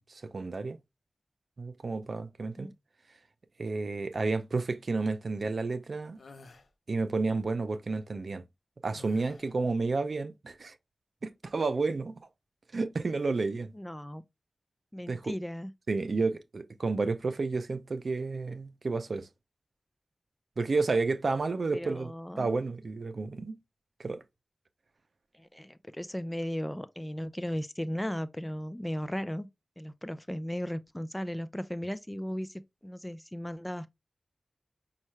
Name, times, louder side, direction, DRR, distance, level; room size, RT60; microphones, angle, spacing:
voice 1, 0.1-0.8 1.6-2.7 3.6-6.2 6.9-8.4 8.8-10.7 11.2-12.2 12.7-13.7 15.1-15.3 15.9-19.3 20.6-23.6 24.0-24.2, right 3 dB, 75° right, 0.5 m, -31 dB
voice 2, 2.4-2.7 13.7-14.2 14.9-15.7 21.7-22.6 25.3-29.5 29.8-33.9, equal, 15° left, 0.5 m, -36 dB
sound 1, 6.2-6.7 8.9-9.6, left 3 dB, 90° left, 0.7 m, -52 dB
5.4 x 2.4 x 3.1 m
cardioid pair, 45°, 0 cm